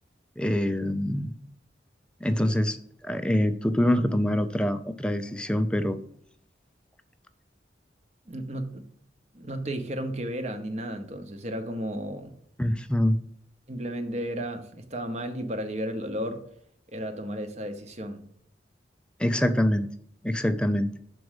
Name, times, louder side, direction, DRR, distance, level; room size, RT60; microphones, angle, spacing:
voice 1, 0.4-1.3 2.2-2.8 3.0-6.0 12.6-13.2 19.2-19.9 20.2-20.9, left 1 dB, 5° left, 0.4 m, -25 dB
voice 2, 8.3-8.9 9.3-12.4 13.7-16.5 16.9-18.2, equal, 40° right, 0.9 m, -33 dB
6.1 x 4.6 x 6.4 m
head